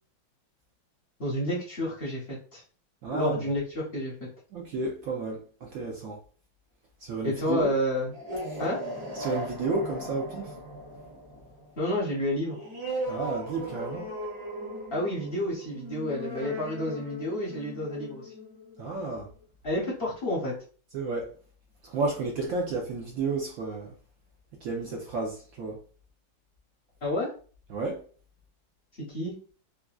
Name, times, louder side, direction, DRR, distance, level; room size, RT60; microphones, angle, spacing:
voice 1, 1.2-2.6 3.1-4.1 7.2-8.1 8.6-8.8 11.8-12.6 14.9-18.3 19.6-20.5 27.0-27.3 29.1-29.3, left 1 dB, 55° left, 0.6 m, -30 dB
voice 2, 3.0-3.4 4.5-6.2 7.0-7.7 8.5-8.6 9.1-10.6 13.1-14.1 18.8-19.3 20.9-21.3 21.8-23.9 24.6-25.8 27.7-28.0, right 3 dB, 75° right, 0.7 m, -32 dB
sound 1, 8.1-19.2, equal, 55° right, 1.3 m, -38 dB
3.6 x 2.3 x 2.3 m
omnidirectional pair, 2.1 m